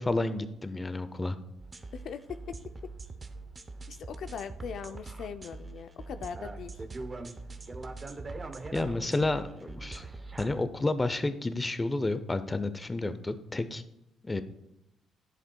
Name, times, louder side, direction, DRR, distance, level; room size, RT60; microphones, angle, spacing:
voice 1, 0.0-1.4 8.7-10.0 10.4-13.8 14.2-14.4, left 2 dB, 20° left, 11 dB, 0.6 m, -30 dB
sound 1, 1.6-10.6, right 3 dB, 30° right, 0.7 m, -42 dB
voice 2, 1.9-2.4 3.9-6.8 14.3-14.4, left 7 dB, 70° left, 9 dB, 0.4 m, -40 dB
10.5 x 7.3 x 2.3 m, 0.87 s
cardioid pair, 90°, 0 cm